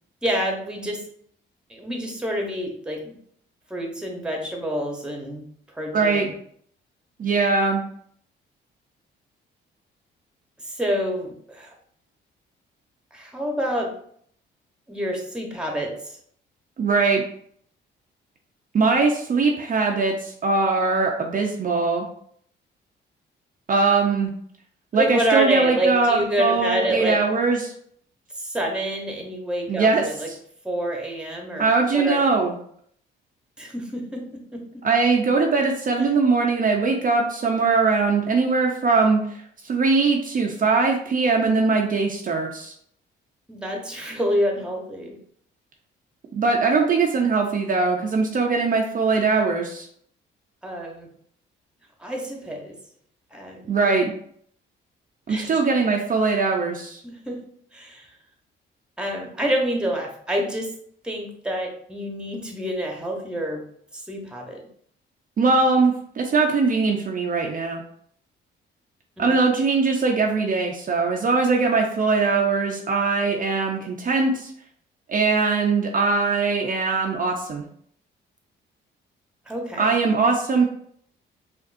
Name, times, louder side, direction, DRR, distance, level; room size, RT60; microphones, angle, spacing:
voice 1, 0.2-1.1 1.7-3.2 3.7-5.4 5.7-6.3 10.6-11.8 13.1-14.0 14.9-16.2 24.9-27.2 28.3-30.3 30.6-32.2 33.6-34.6 36.0-36.1 43.5-45.2 50.6-51.1 52.0-52.8 53.3-53.7 55.3-55.5 57.0-57.4 57.7-58.1 59.0-60.8 61.0-63.6 63.9-64.7 69.2-69.3 79.5-79.9, right 1 dB, 5° right, 1 dB, 1.0 m, -27 dB
voice 2, 5.9-6.3 7.2-7.8 16.8-17.2 18.7-22.1 23.7-24.3 24.9-27.7 29.7-30.3 31.6-32.6 34.8-42.7 46.3-49.9 53.7-54.1 55.3-57.0 65.4-67.8 69.2-74.5 75.1-77.6 79.8-80.7, right 4 dB, 45° right, 1 dB, 0.6 m, -21 dB
5.1 x 2.6 x 2.6 m, 0.63 s
cardioid pair, 90°, 20 cm